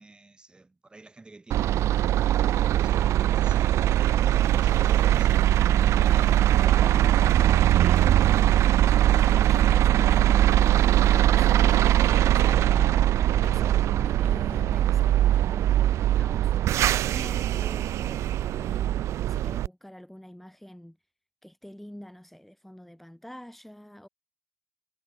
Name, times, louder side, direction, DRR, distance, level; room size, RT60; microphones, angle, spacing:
voice 1, 0.0-2.1 2.3-5.5 7.5-8.3, right 2 dB, 20° right, 6.0 m, -48 dB
sound 1, 1.5-19.7, right 13 dB, 85° right, 0.4 m, -21 dB
sound 2, 4.5-15.4, left 7 dB, 50° left, 3.9 m, -43 dB
voice 2, 6.6-7.0 8.8-21.0 21.4-24.1, equal, 5° left, 4.2 m, -46 dB
cardioid pair, 110°, 5 cm